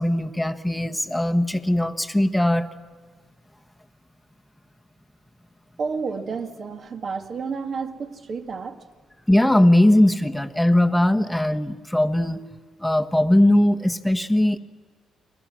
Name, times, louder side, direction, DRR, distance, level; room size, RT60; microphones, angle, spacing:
voice 1, 0.0-2.7 9.3-12.5 12.8-14.6, left 1 dB, 5° left, 6 dB, 1.2 m, -19 dB
voice 2, 5.8-8.8, right 5 dB, 50° right, 6 dB, 2.0 m, -30 dB
29.5 x 21.0 x 6.3 m, 1.4 s
cardioid pair, 90°, 0 cm